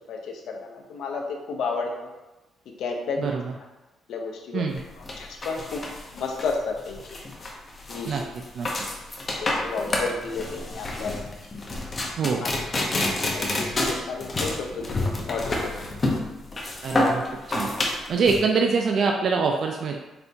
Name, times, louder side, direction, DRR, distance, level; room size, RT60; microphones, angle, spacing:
voice 1, 0.1-2.1 2.7-3.3 4.1-4.6 5.2-7.0 7.9-8.2 9.4-11.2 12.4-12.5 13.3-15.7, left 4 dB, 75° left, 2 dB, 0.6 m, -32 dB
sound 1, 4.7-18.4, left 2 dB, 35° left, 0.8 m, -28 dB
voice 2, 16.8-17.2 17.5-17.7 18.1-20.0, right 5 dB, 60° right, 1 dB, 0.4 m, -24 dB
4.2 x 3.3 x 2.7 m, 1.1 s
cardioid pair, 95°, 0 cm